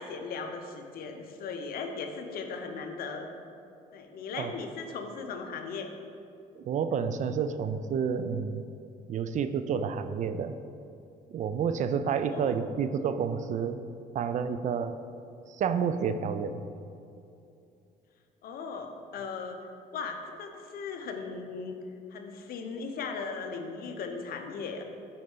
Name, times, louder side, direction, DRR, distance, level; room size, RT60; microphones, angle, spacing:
voice 1, 0.0-3.3 3.9-5.9 12.3-12.6 18.4-19.7 19.9-21.8 22.1-24.8, left 5 dB, 60° left, 4 dB, 0.8 m, -38 dB
voice 2, 6.6-8.6 9.1-10.6 11.3-13.8 14.1-14.9 15.5-16.6, right 6 dB, 45° right, 10 dB, 0.4 m, -30 dB
6.6 x 4.4 x 5.4 m, 2.6 s
cardioid pair, 110°, 17 cm